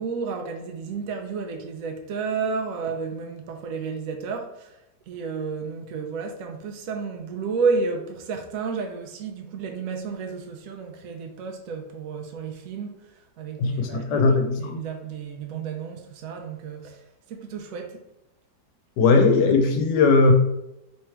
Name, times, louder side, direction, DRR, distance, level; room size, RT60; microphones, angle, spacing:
voice 1, 0.0-4.8 5.1-18.0, right 5 dB, 70° right, 0.8 m, -31 dB
voice 2, 13.6-14.8 19.0-20.3, left 4 dB, 80° left, 1.3 m, -19 dB
3.3 x 3.1 x 4.4 m
omnidirectional pair, 1.9 m